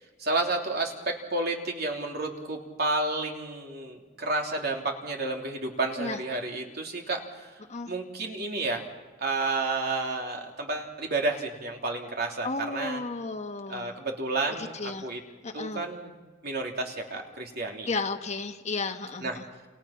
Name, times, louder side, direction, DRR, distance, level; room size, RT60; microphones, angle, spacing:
voice 1, 0.2-7.5 7.9-8.8 9.2-13.0 13.7-15.2 15.5-16.1 16.4-17.9 19.2-19.4, right 2 dB, 55° right, 1 dB, 3.3 m, -31 dB
voice 2, 12.4-13.9 14.8-15.1 15.4-15.8 17.9-19.4, left 3 dB, 40° left, 5 dB, 1.5 m, -33 dB
29.5 x 28.0 x 6.0 m, 1.3 s
head